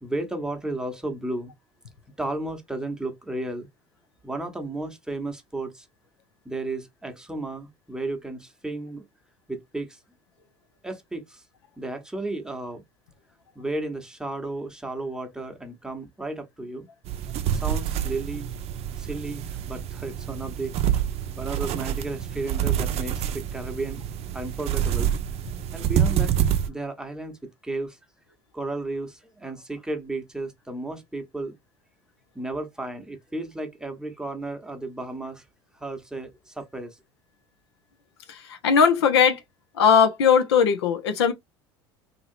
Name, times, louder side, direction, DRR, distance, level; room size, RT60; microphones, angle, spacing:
voice 1, 0.0-1.5 2.2-3.7 4.2-5.9 6.4-9.0 9.5-10.0 10.8-11.4 11.8-12.8 13.5-16.9 17.5-18.5 19.0-20.7 21.4-24.0 24.3-25.1 25.7-26.3 26.7-28.0 28.5-31.5 32.3-35.4 35.8-37.0, right 2 dB, 5° right, 0.9 m, -33 dB
sound 1, 17.0-26.7, right 10 dB, 50° right, 0.6 m, -27 dB
voice 2, 38.3-39.4 39.8-41.3, left 7 dB, 85° left, 0.6 m, -19 dB
2.9 x 2.7 x 2.5 m
hypercardioid pair, 75°, 13 cm